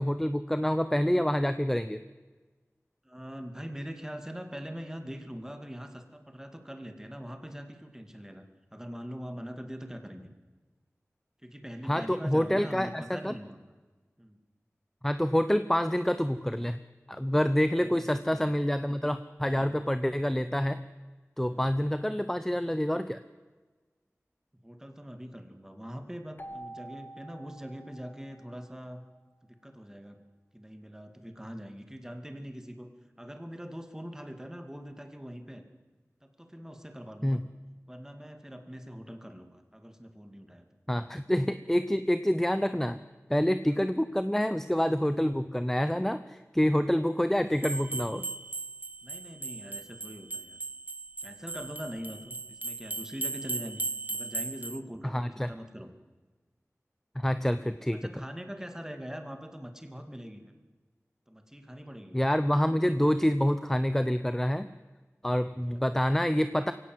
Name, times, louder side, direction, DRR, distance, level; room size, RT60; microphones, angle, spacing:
voice 1, 0.0-2.0 11.9-13.4 15.0-16.8 17.1-20.9 21.4-23.2 37.2-37.5 40.9-43.0 43.3-48.3 55.1-55.5 57.2-58.0 62.1-64.7 65.2-66.7, equal, 5° left, 11 dB, 0.7 m, -27 dB
voice 2, 3.0-10.3 11.4-13.6 14.2-14.4 17.8-18.5 21.4-21.8 24.6-29.0 29.5-30.2 30.5-32.9 33.2-35.6 36.2-37.4 37.9-40.7 43.7-43.8 49.0-50.6 51.2-55.9 58.0-60.5 61.3-62.2 65.7-65.8, equal, 10° right, 6 dB, 2.5 m, -43 dB
Keyboard (musical), 26.4-29.0, right 1 dB, 40° left, 1.3 m, -47 dB
sound 1, 47.6-54.8, right 3 dB, 30° right, 0.8 m, -37 dB
23.0 x 17.0 x 8.0 m, 1.3 s
wide cardioid pair, 55°, 5 cm